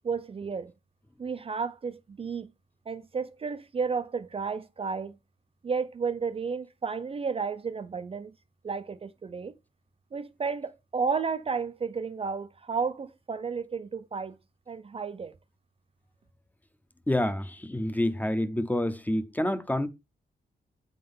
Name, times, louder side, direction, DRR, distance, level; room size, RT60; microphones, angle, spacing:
voice 1, 0.0-0.7 1.2-2.5 2.9-5.1 5.6-8.3 8.6-9.5 10.1-14.4 14.7-15.3, right 5 dB, 35° right, 0.4 m, -32 dB
voice 2, 17.1-19.9, left 1 dB, 10° left, 0.6 m, -28 dB
8.6 x 3.8 x 5.3 m
wide cardioid pair, 165°, 17 cm